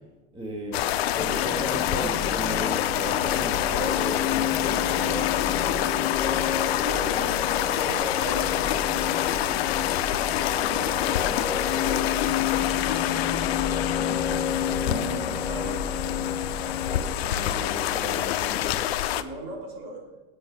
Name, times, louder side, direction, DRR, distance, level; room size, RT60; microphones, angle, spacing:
voice 1, 0.3-0.8 1.1-5.8 14.8-15.8 17.2-18.7, equal, 15° right, -3 dB, 1.9 m, -35 dB
sound 1, 0.7-19.2, left 12 dB, 65° left, 0.7 m, -27 dB
sound 2, 1.2-17.2, left 7 dB, 15° left, 0.4 m, -31 dB
voice 2, 6.8-16.6 19.1-20.1, right 2 dB, 55° right, -1 dB, 3.3 m, -41 dB
8.5 x 7.8 x 6.2 m, 1.2 s
supercardioid pair, 150°, 33 cm